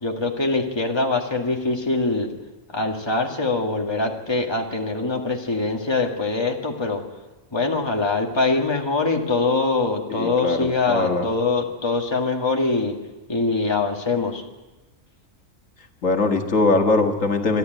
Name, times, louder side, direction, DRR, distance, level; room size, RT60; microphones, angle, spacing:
voice 1, 0.0-2.3 2.7-7.0 7.5-13.0 13.3-14.4, left 3 dB, 20° left, 1 dB, 2.0 m, -23 dB
voice 2, 10.1-11.3 16.0-17.6, left 3 dB, 80° left, 4 dB, 2.1 m, -21 dB
27.5 x 11.5 x 9.2 m, 1.2 s
omnidirectional pair, 1.3 m